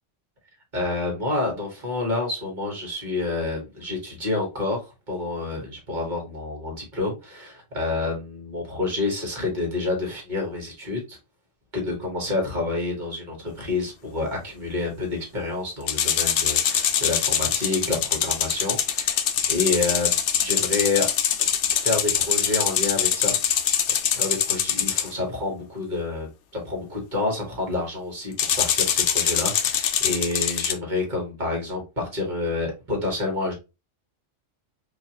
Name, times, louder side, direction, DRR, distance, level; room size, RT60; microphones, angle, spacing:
voice 1, 0.7-4.8 5.1-11.2 11.7-21.1 21.7-23.7 24.1-26.3 26.5-33.5, left 3 dB, 40° right, 1.5 m, -28 dB
sound 1, 15.9-25.1 28.4-30.7, left 9 dB, 75° left, 0.8 m, -23 dB
4.5 x 2.5 x 2.9 m
omnidirectional pair, 1.2 m